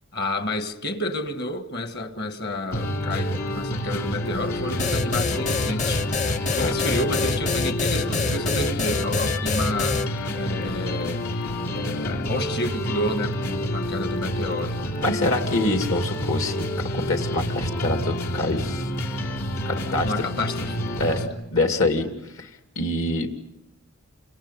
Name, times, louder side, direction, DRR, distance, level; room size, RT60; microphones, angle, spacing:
voice 1, 0.1-10.0 10.3-11.2 11.7-14.8 19.7-21.2, left 1 dB, 50° left, 1.7 m, -30 dB
sound 1, 2.7-21.3, equal, 85° left, 3.2 m, -28 dB
sound 2, 4.8-10.1, left 4 dB, 35° left, 0.8 m, -26 dB
voice 2, 15.0-16.6 16.9-18.9 19.6-20.1 21.0-21.2 21.5-22.1 22.4-22.5 22.8-23.3, left 2 dB, 70° left, 2.5 m, -25 dB
29.5 x 27.0 x 5.5 m
head